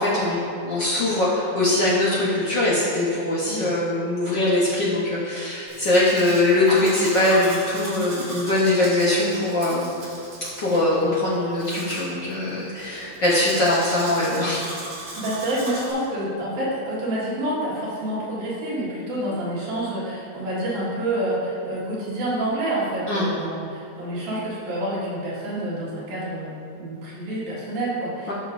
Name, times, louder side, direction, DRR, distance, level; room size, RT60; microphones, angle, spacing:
voice 1, 0.0-9.9 10.6-14.7 23.1-23.3 28.3-28.4, left 2 dB, 70° left, -7 dB, 1.0 m, -22 dB
Domestic sounds home sounds, 5.7-15.9, right 1 dB, 40° right, 1.4 m, -36 dB
voice 2, 15.1-28.3, right 1 dB, 85° right, -8 dB, 3.3 m, -28 dB
13.0 x 5.9 x 2.6 m, 2.7 s
omnidirectional pair, 3.4 m